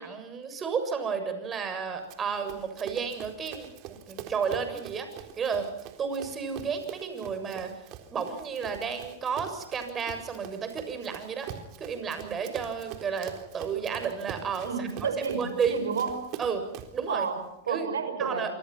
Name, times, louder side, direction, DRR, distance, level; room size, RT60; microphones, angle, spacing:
voice 1, 0.0-5.1 5.4-5.7 6.0-7.7 8.1-11.5 11.8-15.8 16.4-16.6 16.9-17.3 17.7-17.9 18.2-18.6, right 6 dB, 25° right, 8 dB, 7.1 m, -32 dB
Run, 2.1-17.0, right 11 dB, 45° right, 3.8 m, -44 dB
voice 2, 14.6-16.3 17.1-18.6, right 6 dB, 85° right, 10 dB, 5.7 m, -31 dB
28.0 x 25.0 x 5.9 m, 0.81 s
hypercardioid pair, 110°, 0 cm